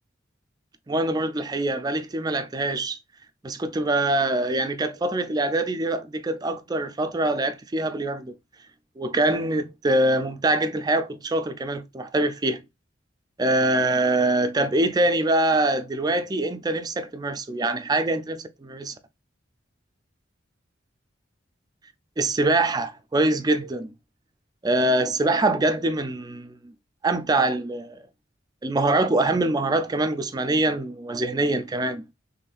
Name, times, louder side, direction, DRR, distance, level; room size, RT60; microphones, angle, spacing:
voice 1, 0.9-3.0 3.4-8.3 9.0-12.6 13.4-19.0 22.2-23.9 24.6-26.7 27.0-28.0 28.6-32.0, right 2 dB, 20° right, 0.4 m, -24 dB
4.1 x 3.2 x 2.4 m
head